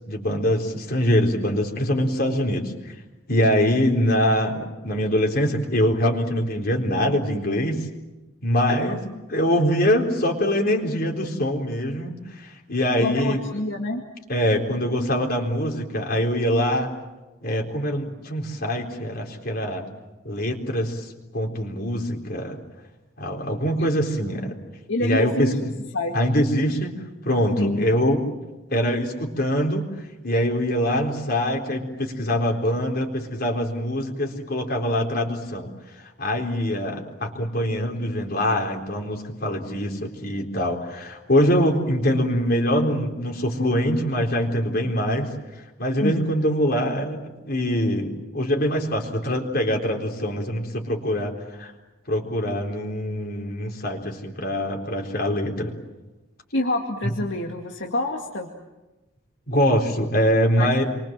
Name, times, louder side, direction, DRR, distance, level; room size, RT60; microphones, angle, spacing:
voice 1, 0.1-3.0 3.3-7.9 8.4-9.0 9.3-13.4 14.3-16.9 17.4-19.9 20.2-22.6 23.2-24.6 25.0-25.7 26.1-26.9 27.2-28.2 28.7-45.3 45.6-51.7 52.1-55.7 59.5-60.8, equal, 50° left, 1 dB, 4.1 m, -24 dB
voice 2, 12.9-14.0 23.8-23.9 24.9-25.6 25.9-26.1 27.6-27.8 46.0-46.4 56.5-58.5 60.6-60.8, left 2 dB, 70° left, 1 dB, 2.3 m, -27 dB
29.0 x 24.0 x 7.6 m, 1.1 s
head